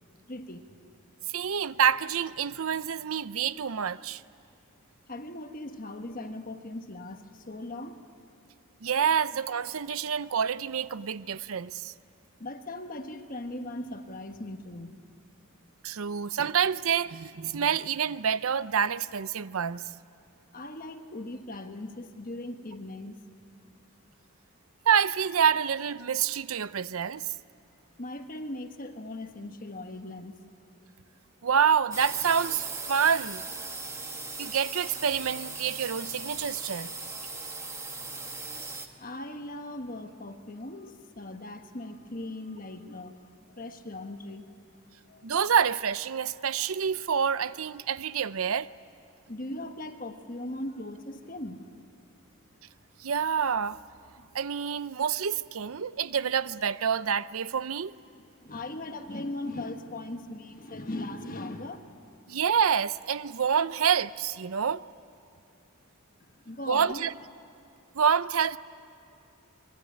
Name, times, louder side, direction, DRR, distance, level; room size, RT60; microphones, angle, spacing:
voice 1, 0.3-0.7 5.1-8.0 12.4-15.0 20.5-23.2 28.0-30.6 39.0-43.2 43.5-44.8 45.1-45.3 49.3-51.8 54.1-54.3 58.2-61.9 66.4-67.1, left 1 dB, 40° left, 1.3 m, -39 dB
voice 2, 1.3-4.2 8.8-11.9 15.8-19.8 24.9-27.2 31.4-33.4 34.4-36.9 45.2-48.7 53.0-53.8 54.3-57.9 62.3-64.8 66.7-67.1 67.9-68.6, right 7 dB, 75° right, 0.6 m, -27 dB
sound 1, 31.9-38.9, right 3 dB, 15° right, 1.4 m, -38 dB
25.5 x 22.0 x 9.7 m
head